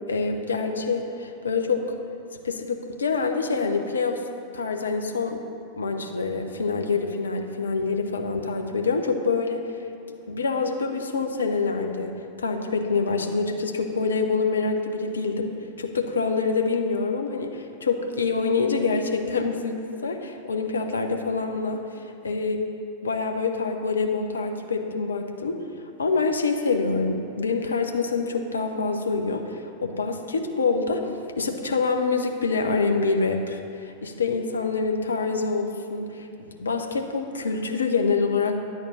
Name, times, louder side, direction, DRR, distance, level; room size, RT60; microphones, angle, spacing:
voice 1, 0.1-1.8 2.4-4.2 4.5-5.4 5.7-9.8 10.3-22.6 23.0-25.7 26.0-38.6, left 4 dB, 70° left, 4 dB, 0.7 m, -26 dB
10.0 x 4.4 x 7.0 m, 2.6 s
figure-of-eight pair, 90°, 0 cm